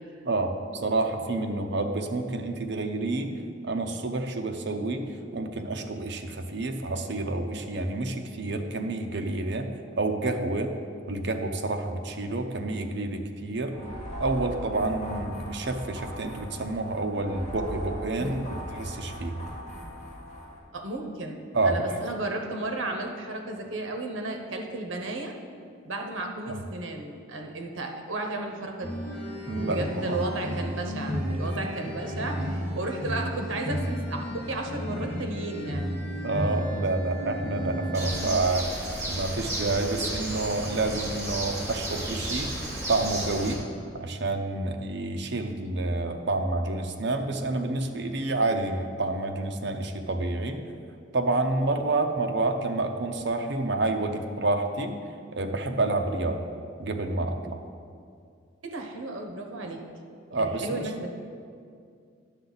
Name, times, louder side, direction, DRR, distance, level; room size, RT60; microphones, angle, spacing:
voice 1, 0.3-3.3 3.6-9.7 10.0-10.7 11.1-13.8 14.2-18.4 18.8-19.4 21.5-21.8 26.5-26.6 29.5-30.3 31.4-31.5 36.2-38.7 39.1-42.5 42.9-43.7 43.9-50.6 51.1-55.0 55.3-56.5 56.8-57.6 60.3-60.9, right 2 dB, 55° right, 5 dB, 0.7 m, -29 dB
sound 1, 13.7-20.6, equal, 35° left, 1.6 m, -39 dB
voice 2, 20.7-25.3 25.8-29.0 29.6-35.9 58.6-59.8 60.3-61.1, right 2 dB, 75° right, 3 dB, 1.0 m, -34 dB
sound 2, 28.8-38.3, equal, 5° left, 1.5 m, -33 dB
Bird, 37.9-43.5, right 1 dB, 15° right, 1.6 m, -33 dB
10.0 x 6.8 x 4.0 m, 2.3 s
head